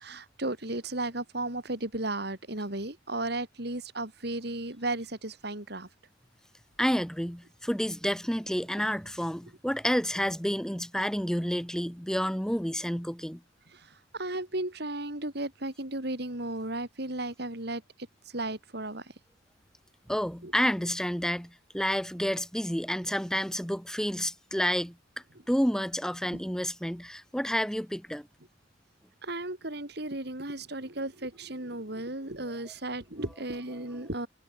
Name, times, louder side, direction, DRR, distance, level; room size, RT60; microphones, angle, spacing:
voice 1, 0.0-5.9 13.7-17.8 18.3-19.1 20.4-20.5 29.2-34.3, right 2 dB, 55° right, 3.7 m, -35 dB
voice 2, 6.8-13.4 20.1-25.0 25.5-28.3, equal, 5° left, 2.0 m, -30 dB
head